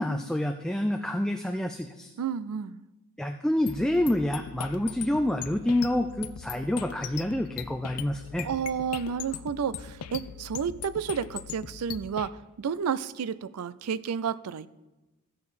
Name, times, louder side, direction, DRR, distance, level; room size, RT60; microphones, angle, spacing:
voice 1, 0.0-2.1 3.2-8.5, left 1 dB, 5° left, 5 dB, 0.3 m, -28 dB
voice 2, 2.2-2.8 8.4-14.7, right 7 dB, 85° right, 16 dB, 0.4 m, -31 dB
sound 1, 3.7-12.3, left 8 dB, 90° left, 0.5 m, -40 dB
14.0 x 6.7 x 4.2 m, 1.1 s
head